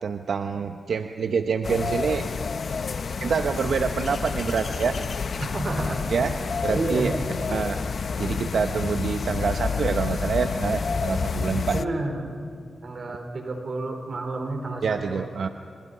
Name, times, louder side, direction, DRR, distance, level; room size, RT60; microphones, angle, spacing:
voice 1, 0.0-2.2 3.2-5.0 6.1-6.3 6.6-7.2 7.5-7.8 8.2-11.8 13.1-13.2 14.8-15.5, right 6 dB, 75° right, 7 dB, 0.9 m, -26 dB
sound 1, 1.6-11.9, left 5 dB, 65° left, 0.9 m, -29 dB
voice 2, 5.4-6.0 6.7-7.2 11.7-12.4 12.8-15.2, right 2 dB, 60° right, 5 dB, 4.4 m, -30 dB
28.5 x 27.5 x 5.6 m, 2.3 s
cardioid pair, 55°, 0 cm